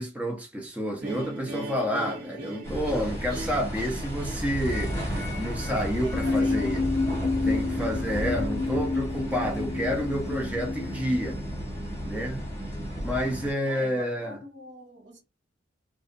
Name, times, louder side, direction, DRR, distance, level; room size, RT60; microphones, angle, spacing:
voice 1, 0.0-6.8 7.4-11.4 12.0-12.4 13.0-14.4, equal, 10° right, 0.6 m, -29 dB
sound 1, 1.0-8.1, right 1 dB, 55° right, 0.9 m, -40 dB
sound 2, 2.6-13.5, equal, 15° left, 1.0 m, -33 dB
voice 2, 6.0-6.9 7.4-7.8 13.6-15.2, right 1 dB, 75° right, 1.2 m, -42 dB
sound 3, 6.1-11.4, left 3 dB, 85° left, 0.4 m, -29 dB
2.6 x 2.4 x 2.4 m
head